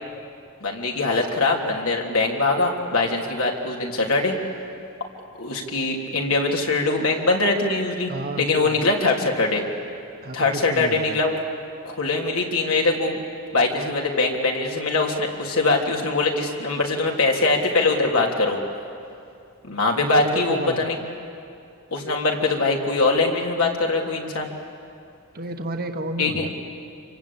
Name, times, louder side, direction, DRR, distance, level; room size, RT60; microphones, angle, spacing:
voice 1, 0.6-4.4 5.4-8.1 8.4-9.6 10.3-11.4 11.8-13.2 13.5-18.6 19.6-21.0 21.9-24.5 26.2-26.5, left 3 dB, 85° left, 0 dB, 3.4 m, -22 dB
voice 2, 8.1-8.9 10.2-11.2 20.0-21.1 25.3-26.6, right 1 dB, 45° right, 5 dB, 1.3 m, -32 dB
27.0 x 24.5 x 8.8 m, 2.5 s
head